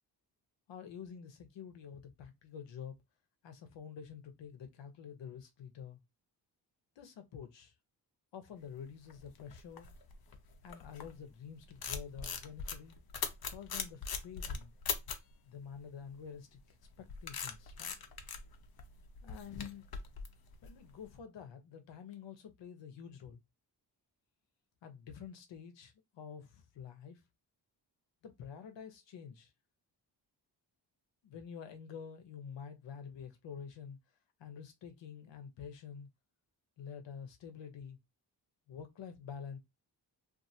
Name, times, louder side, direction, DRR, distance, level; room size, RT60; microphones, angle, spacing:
voice 1, 0.7-3.0 3.4-6.0 7.0-7.7 8.3-9.9 10.6-13.0 13.5-14.7 15.4-18.0 19.2-19.8 20.6-23.4 24.8-27.2 28.2-29.5 31.2-34.0 34.4-36.1 36.8-38.0 38.7-39.6, left 7 dB, 80° left, 0.9 m, -48 dB
sound 1, 8.9-11.2 11.6-15.3 16.6-21.1, left 6 dB, 55° left, 0.7 m, -41 dB
2.7 x 2.6 x 2.7 m
cardioid pair, 65°, 43 cm